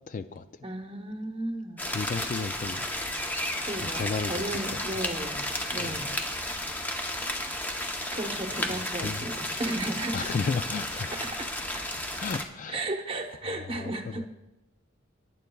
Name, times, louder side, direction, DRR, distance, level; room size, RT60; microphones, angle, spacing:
voice 1, 0.1-0.5 1.9-2.8 3.8-4.8 5.8-6.0 8.9-9.3 10.1-11.2 12.2-12.8 13.4-14.3, left 4 dB, 40° left, 0.3 m, -33 dB
voice 2, 0.6-1.8 3.6-5.4 5.7-6.1 8.1-10.3 11.1-12.0 12.7-14.3, right 1 dB, 25° right, 0.9 m, -34 dB
sound 1, 1.8-12.5, left 1 dB, 10° left, 0.7 m, -33 dB
18.5 x 9.2 x 2.3 m
head